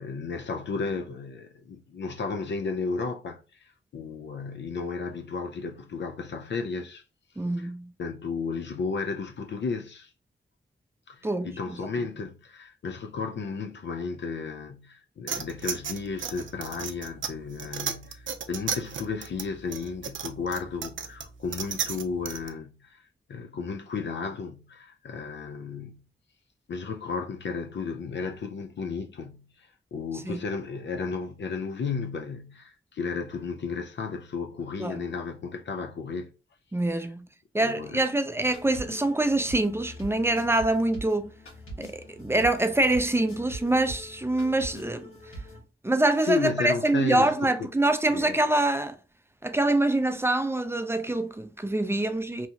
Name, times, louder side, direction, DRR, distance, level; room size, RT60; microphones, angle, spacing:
voice 1, 0.0-7.0 7.6-7.7 8.0-10.1 11.1-26.0 26.7-36.3 36.9-37.0 37.6-38.0 46.2-47.7 48.1-48.4, left 4 dB, 60° left, 0.4 m, -33 dB
voice 2, 7.4-7.9 11.2-11.9 30.3-30.4 34.8-35.0 36.7-37.3 37.5-41.3 41.8-45.1 45.8-49.0 49.4-52.5, right 2 dB, 10° right, 0.4 m, -25 dB
sound 1, 15.3-22.5, right 7 dB, 70° right, 0.5 m, -34 dB
sound 2, 38.4-45.6, right 1 dB, 85° left, 1.3 m, -42 dB
2.8 x 2.3 x 2.7 m
cardioid pair, 45°, 21 cm